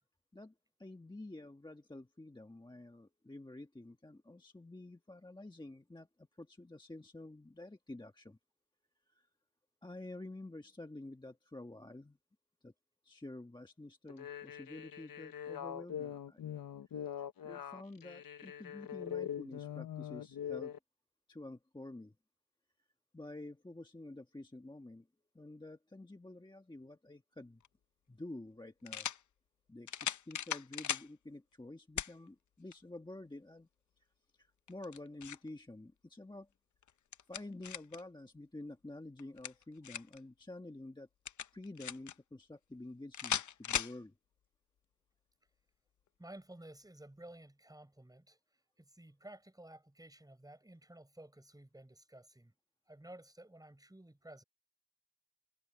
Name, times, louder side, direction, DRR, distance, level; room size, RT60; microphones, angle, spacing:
voice 1, 0.8-8.4 9.1-9.3 9.8-12.2 12.6-12.7 13.0-16.4 17.2-20.7 21.3-22.1 23.1-25.1 25.3-27.6 28.1-29.1 29.7-33.7 34.0-34.1 34.4-36.5 37.3-41.1 41.5-44.1, left 2 dB, 15° left, 1.4 m, -49 dB
sound 1, 14.1-20.8, left 9 dB, 75° left, 0.9 m, -43 dB
sound 2, 27.6-27.7 28.9-29.2 29.9-31.1 32.0-32.1 32.7-32.8 34.7-35.5 36.8-38.0 39.2-40.2 41.3-42.1 43.1-44.0, left 9 dB, 60° left, 0.6 m, -38 dB
voice 2, 46.2-48.4 48.8-52.5 52.9-54.4, right 1 dB, 10° right, 6.3 m, -54 dB
wide cardioid pair, 120°, 34 cm